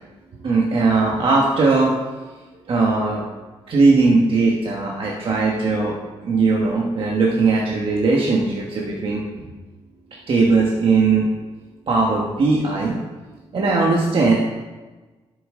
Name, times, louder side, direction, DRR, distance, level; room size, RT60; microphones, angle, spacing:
voice 1, 0.4-1.9 2.7-3.2 3.7-5.9 6.2-9.2 10.3-11.3 11.9-13.0 13.5-14.3, right 3 dB, 55° right, -3 dB, 1.3 m, -18 dB
11.0 x 6.9 x 3.8 m, 1.2 s
wide cardioid pair, 135°, 11 cm